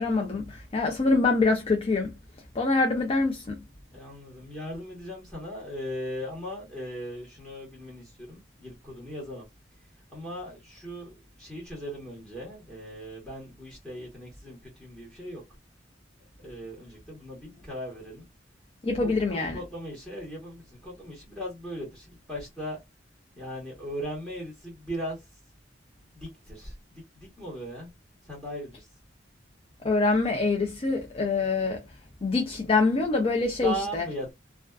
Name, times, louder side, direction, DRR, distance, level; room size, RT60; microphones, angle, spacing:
voice 1, 0.0-2.1 2.6-3.4 18.8-19.6 29.8-31.8 32.2-34.1, left 3 dB, 30° left, 0.5 m, -25 dB
voice 2, 3.9-9.4 10.1-15.4 16.4-18.3 19.0-22.8 23.4-25.2 26.2-26.7 27.1-27.9 28.3-28.8 33.6-34.3, equal, 5° left, 1.1 m, -38 dB
2.4 x 2.3 x 2.2 m
head